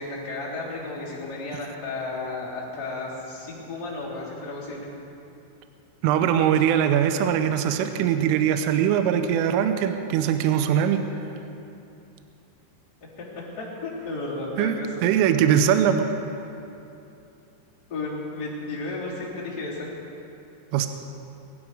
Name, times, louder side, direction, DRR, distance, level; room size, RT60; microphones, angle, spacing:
voice 1, 0.0-4.9 13.2-15.3 17.9-19.9, left 2 dB, 20° left, -8 dB, 3.2 m, -33 dB
voice 2, 6.0-11.0 14.6-16.1 20.7-20.9, right 9 dB, 80° right, 8 dB, 3.2 m, -21 dB
22.5 x 11.5 x 4.9 m, 2.8 s
omnidirectional pair, 5.9 m